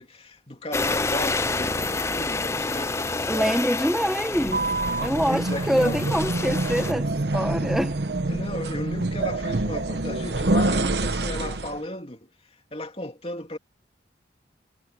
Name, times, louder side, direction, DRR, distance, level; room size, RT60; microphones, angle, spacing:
voice 1, 0.0-3.6 5.3-6.2 8.3-12.3 12.7-13.6, left 1 dB, 30° left, 2.7 m, -35 dB
sound 1, 0.7-6.9, left 3 dB, 15° left, 0.5 m, -29 dB
voice 2, 3.3-4.6 5.0-7.1 7.3-8.0, equal, ahead, 0.9 m, -25 dB
sound 2, 4.3-11.8, right 2 dB, 65° right, 1.0 m, -26 dB
head